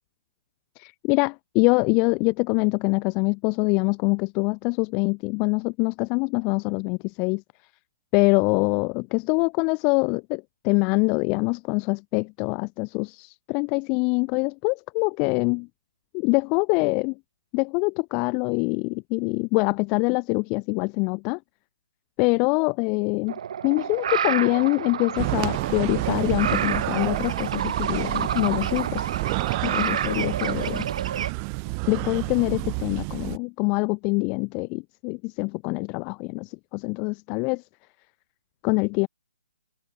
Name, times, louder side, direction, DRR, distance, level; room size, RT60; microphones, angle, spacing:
voice 1, 0.8-7.4 8.1-15.7 16.1-17.1 17.5-21.4 22.2-23.3 23.6-29.1 29.6-30.9 31.9-37.6 38.6-39.1, left 32 dB, 25° left, 1.0 m, -24 dB
sound 1, 23.3-31.3, right 8 dB, 50° right, 3.7 m, -29 dB
sound 2, 25.2-33.4, right 40 dB or more, 25° right, 1.0 m, -29 dB
figure-of-eight pair, 140°, 4 cm